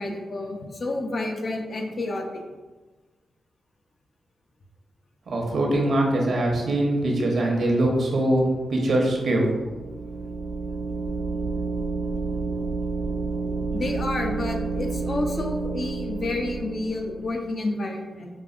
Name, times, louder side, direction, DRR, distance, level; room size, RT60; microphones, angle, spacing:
voice 1, 0.0-2.4 13.7-18.3, left 2 dB, 60° left, 2 dB, 0.6 m, -30 dB
voice 2, 5.3-8.4 8.7-9.5, right 1 dB, 70° right, 0 dB, 0.8 m, -22 dB
sound 1, 9.6-17.3, right 4 dB, 50° right, 0.4 m, -30 dB
5.2 x 2.5 x 2.4 m, 1.3 s
cardioid pair, 55°, 0 cm